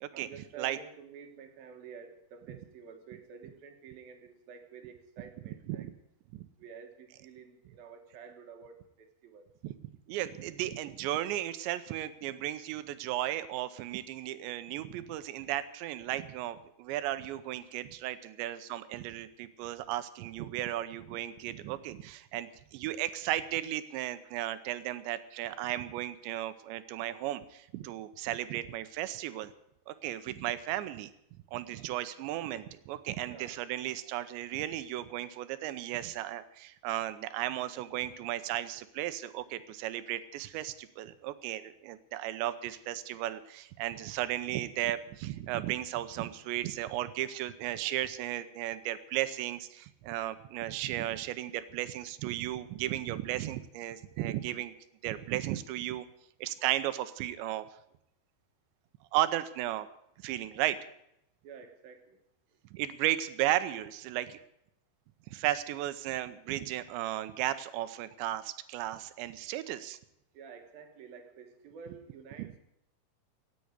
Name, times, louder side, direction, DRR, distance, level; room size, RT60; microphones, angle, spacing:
voice 1, 0.1-5.9 6.6-9.4 33.2-33.6 61.4-62.2 70.3-72.6, right 6 dB, 60° right, 6 dB, 3.0 m, -50 dB
voice 2, 10.1-29.5 29.9-31.1 31.5-54.7 55.0-56.1 56.4-57.7 59.1-59.9 60.2-60.8 62.7-64.4 65.3-70.0 72.4-72.5, right 14 dB, 80° right, 13 dB, 3.0 m, -35 dB
17.0 x 8.5 x 8.1 m, 0.78 s
omnidirectional pair, 5.3 m